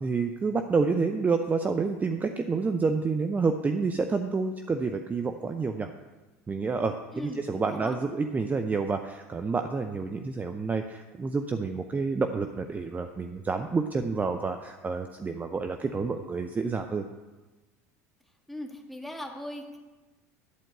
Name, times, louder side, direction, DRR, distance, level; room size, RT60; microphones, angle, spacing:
voice 1, 0.0-5.9 6.5-17.0, right 4 dB, 20° right, 7 dB, 0.7 m, -29 dB
voice 2, 7.1-7.9 18.5-19.8, left 1 dB, ahead, 0 dB, 1.8 m, -39 dB
11.5 x 4.5 x 7.9 m, 1.2 s
hypercardioid pair, 85°, 8 cm